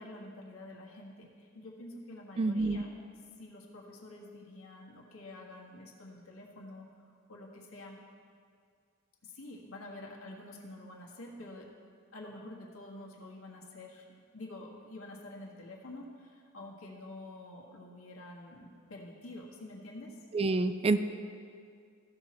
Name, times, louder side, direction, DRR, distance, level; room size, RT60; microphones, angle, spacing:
voice 1, 0.0-2.9 3.4-6.9 7.3-8.0 9.2-11.7 12.1-14.1 14.3-20.2, left 1 dB, 90° left, -1 dB, 1.6 m, -48 dB
voice 2, 2.4-2.8 20.3-21.0, right 3 dB, 30° right, 10 dB, 0.4 m, -27 dB
15.0 x 6.0 x 4.3 m, 2.2 s
head